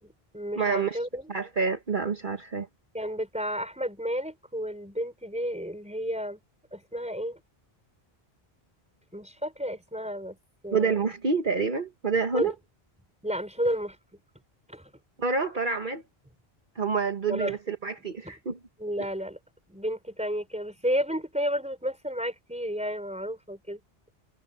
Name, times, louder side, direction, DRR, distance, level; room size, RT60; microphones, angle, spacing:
voice 1, 0.0-1.3 2.9-6.4 6.7-7.4 9.1-10.4 10.6-11.0 12.3-12.5 13.2-14.0 14.7-14.9 17.3-17.6 18.2-18.3 18.8-19.4 19.7-23.8, equal, 5° right, 5.2 m, -32 dB
voice 2, 0.6-1.0 1.3-2.7 10.7-12.5 15.2-16.0 16.7-18.6, right 4 dB, 50° right, 1.5 m, -27 dB
omnidirectional pair, 1.1 m